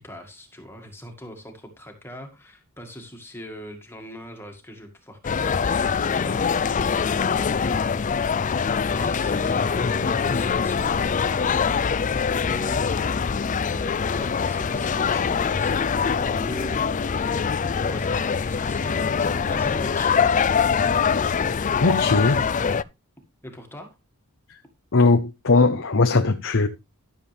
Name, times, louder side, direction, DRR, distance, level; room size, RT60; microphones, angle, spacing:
voice 1, 0.0-8.1 8.8-12.8 13.7-16.9 17.8-20.6 23.4-24.0, equal, 10° left, 1.9 m, -40 dB
sound 1, 5.2-22.8, left 6 dB, 35° left, 0.4 m, -23 dB
voice 2, 21.8-22.4 24.9-26.7, left 3 dB, 60° left, 0.8 m, -19 dB
13.0 x 7.3 x 3.4 m
head